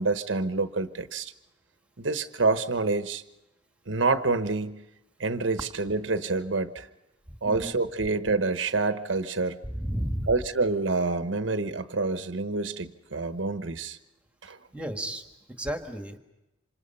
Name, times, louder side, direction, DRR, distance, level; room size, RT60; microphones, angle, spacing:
voice 1, 0.0-1.3 2.0-3.2 3.9-4.8 5.2-6.9 7.4-9.6 10.3-14.0 14.4-14.6, right 3 dB, 85° right, 10 dB, 1.1 m, -27 dB
voice 2, 9.6-10.3 14.7-16.2, equal, 5° right, 5 dB, 1.7 m, -33 dB
27.0 x 26.0 x 5.5 m, 0.95 s
head